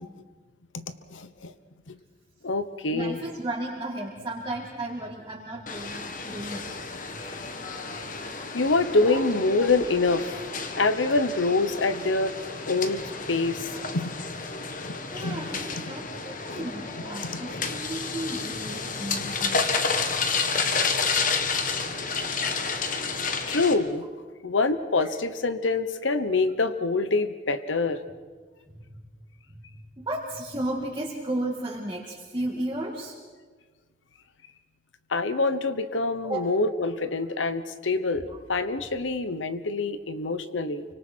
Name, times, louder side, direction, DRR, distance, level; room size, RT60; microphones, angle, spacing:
voice 1, 1.1-1.5 1.9-2.0 2.4-3.2 8.5-10.4 10.7-12.3 12.7-13.0 13.3-13.7 13.9-14.2 15.2-15.5 16.5-16.7 17.2-17.6 19.2-19.3 22.7-22.8 23.5-24.0 24.4-28.0 35.1-40.8, left 3 dB, 85° left, 11 dB, 1.0 m, -26 dB
voice 2, 2.9-6.8 7.1-7.2 7.9-8.0 9.0-9.2 9.5-9.6 10.3-10.6 11.2-11.3 13.7-13.8 15.1-20.0 22.3-22.4 25.0-25.2 28.7-29.0 29.5-33.2 36.2-36.4 38.3-38.4, right 1 dB, 25° right, -5 dB, 2.3 m, -34 dB
sound 1, 5.7-23.7, left 4 dB, 45° left, 1.5 m, -31 dB
29.0 x 25.0 x 4.6 m, 1.4 s
head